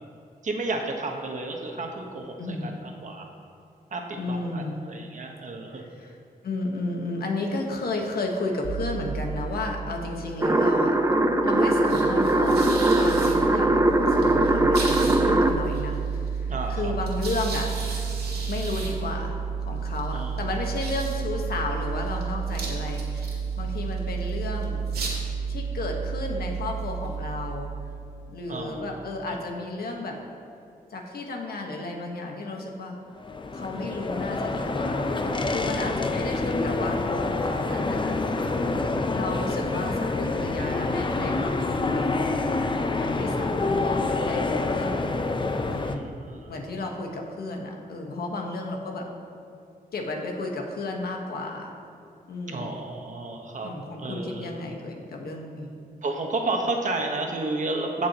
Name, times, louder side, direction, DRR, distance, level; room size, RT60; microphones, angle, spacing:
voice 1, 0.4-3.3 3.9-5.8 16.5-16.9 20.1-20.4 28.5-28.8 29.3-29.4 45.8-46.6 52.5-53.7 54.0-54.5 56.0-58.1, right 2 dB, 50° right, 2 dB, 1.3 m, -32 dB
voice 2, 2.4-2.7 4.2-4.8 5.7-6.2 6.4-11.0 11.4-12.6 13.0-17.7 18.5-24.8 25.5-27.7 28.3-30.2 30.9-33.0 33.5-38.2 39.1-42.2 42.6-45.1 45.6-46.1 46.5-49.1 49.9-51.7 52.3-52.7 53.6-55.7, left 2 dB, 75° left, 1 dB, 1.4 m, -33 dB
sound 1, 8.6-28.5, right 6 dB, 80° right, 2.2 m, -31 dB
sound 2, 10.4-15.5, right 2 dB, 20° right, 0.6 m, -21 dB
sound 3, 33.2-45.9, left 3 dB, 30° left, 0.6 m, -27 dB
16.5 x 6.1 x 3.0 m, 2.6 s
cardioid pair, 90°, 16 cm